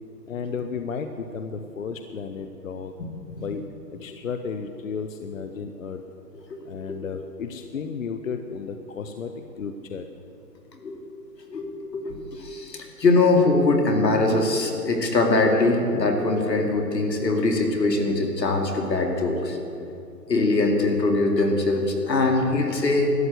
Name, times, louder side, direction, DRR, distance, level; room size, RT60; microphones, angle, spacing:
voice 1, 0.3-2.9 3.4-3.6 3.9-6.0 6.6-10.1, left 5 dB, 55° left, 7 dB, 0.8 m, -33 dB
voice 2, 11.5-19.6 20.3-23.1, left 2 dB, 85° left, 3 dB, 2.6 m, -22 dB
13.0 x 9.5 x 8.0 m, 2.6 s
hypercardioid pair, 165°, 49 cm